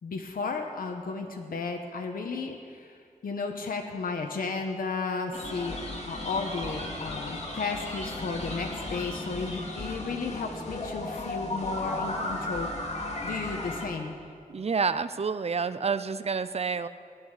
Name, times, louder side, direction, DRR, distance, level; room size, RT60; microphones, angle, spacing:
voice 1, 0.0-5.8 6.1-12.7 13.2-14.1, left 4 dB, 90° left, 3 dB, 1.2 m, -34 dB
sound 1, 5.3-13.9, left 2 dB, 50° left, 2.6 m, -35 dB
voice 2, 14.5-16.9, right 5 dB, 45° right, 13 dB, 0.6 m, -28 dB
18.0 x 11.0 x 6.7 m, 2.2 s
wide cardioid pair, 85°, 14 cm